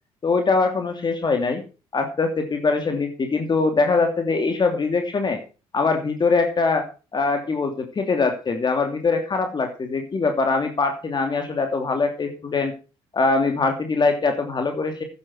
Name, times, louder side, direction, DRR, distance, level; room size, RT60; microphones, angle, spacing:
voice 1, 0.2-1.6 1.9-5.4 5.7-12.7 13.1-15.0, left 4 dB, 35° left, 5 dB, 2.8 m, -22 dB
11.0 x 9.4 x 6.3 m, 0.33 s
supercardioid pair, 70°, 12 cm